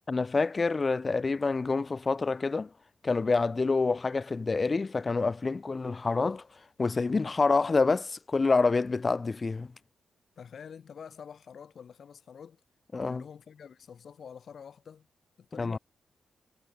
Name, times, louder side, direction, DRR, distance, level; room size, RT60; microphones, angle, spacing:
voice 1, 0.1-2.7 3.0-6.5 6.8-9.7 12.9-13.2 15.6-15.8, left 4 dB, 30° left, 0.3 m, -27 dB
voice 2, 10.4-12.6 13.0-15.1 15.4-15.8, left 7 dB, 55° left, 1.7 m, -47 dB
wide cardioid pair, 135°, 0 cm